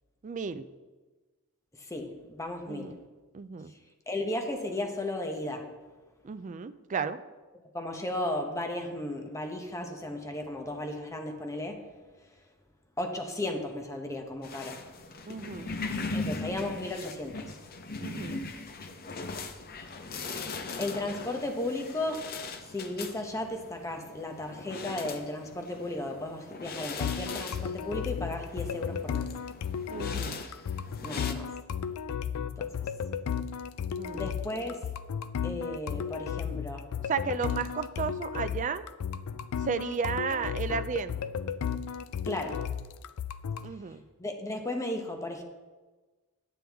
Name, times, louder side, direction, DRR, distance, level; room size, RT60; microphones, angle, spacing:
voice 1, 0.2-0.7 2.7-3.0 3.3-3.7 6.2-7.2 15.3-15.7 18.0-18.4 29.9-30.3 33.9-34.3 37.1-38.8 39.6-41.2 43.6-44.0, right 6 dB, 35° right, 12 dB, 0.4 m, -33 dB
voice 2, 1.8-3.0 4.1-5.7 7.7-11.8 13.0-14.8 16.1-17.6 20.8-22.3 22.6-29.3 31.0-31.5 32.6-32.7 34.1-34.8 35.4-36.9 42.2-42.6 44.2-45.4, left 1 dB, 15° left, 3 dB, 0.9 m, -35 dB
sound 1, 14.4-31.3, left 3 dB, 45° left, 0.6 m, -40 dB
sound 2, 27.0-43.7, left 7 dB, 85° left, 0.4 m, -34 dB
9.3 x 9.2 x 3.5 m, 1.3 s
head